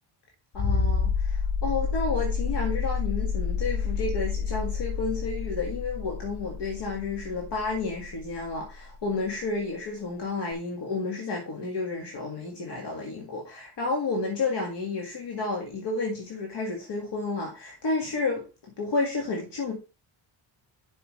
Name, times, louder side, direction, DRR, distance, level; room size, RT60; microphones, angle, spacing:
voice 1, 0.5-18.5 18.8-19.7, left 3 dB, 55° left, 2.0 m, -31 dB
sound 1, 0.5-9.0 10.5-10.6, left 5 dB, 35° left, 0.6 m, -29 dB
7.5 x 5.9 x 3.2 m
cardioid pair, 130°, 49 cm